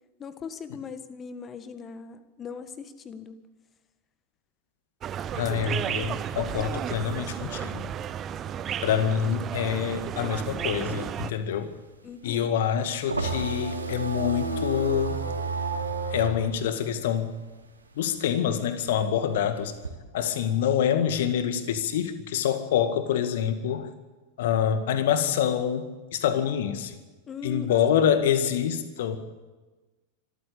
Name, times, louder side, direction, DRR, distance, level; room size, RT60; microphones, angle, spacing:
voice 1, 0.2-3.4 12.0-12.6 27.3-28.2, left 6 dB, 25° left, 11 dB, 1.7 m, -40 dB
sound 1, 5.0-11.3, right 9 dB, 30° right, 0.8 m, -33 dB
voice 2, 5.3-7.9 8.8-11.7 12.2-15.2 16.1-17.4 18.0-19.7 20.1-23.9 24.4-26.9 27.4-29.2, left 9 dB, 55° left, 10 dB, 1.9 m, -26 dB
sound 2, 10.8-17.8 18.1-19.9, right 4 dB, 80° right, 2.9 m, -32 dB
24.5 x 14.0 x 8.5 m, 1.2 s
figure-of-eight pair, 90°, 0 cm